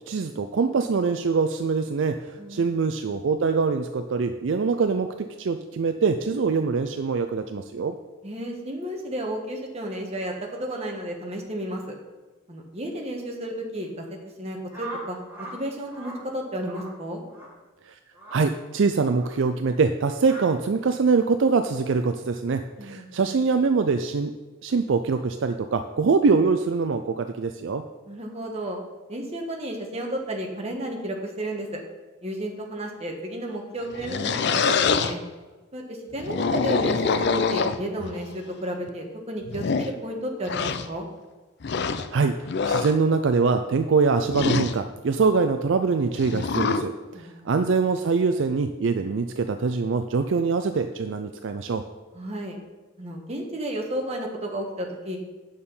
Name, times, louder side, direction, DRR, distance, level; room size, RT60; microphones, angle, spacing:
voice 1, 0.1-8.0 17.9-18.0 18.3-24.3 24.6-27.8 42.1-42.3 42.6-51.8, right 4 dB, 60° right, 7 dB, 0.4 m, -24 dB
voice 2, 2.4-2.7 8.2-11.8 12.5-14.0 14.4-17.2 22.8-23.1 28.1-28.8 29.1-31.8 32.2-35.2 35.7-41.1 47.1-47.5 52.1-52.6 53.0-55.2, right 1 dB, 30° right, 1 dB, 1.3 m, -32 dB
sound 1, 14.7-15.6 15.9-16.2 16.6-16.9 17.3-17.5 18.1-18.4 19.1-19.3 20.2-20.5, right 2 dB, 10° right, 2.1 m, -40 dB
sound 2, 33.8-35.1 36.1-38.1 38.9-39.0 39.4-39.9 40.4-40.9 41.6-42.1 42.4-42.9 44.3-44.8 46.1-46.8, left 5 dB, 50° left, 0.5 m, -25 dB
8.7 x 6.6 x 5.5 m, 1.2 s
head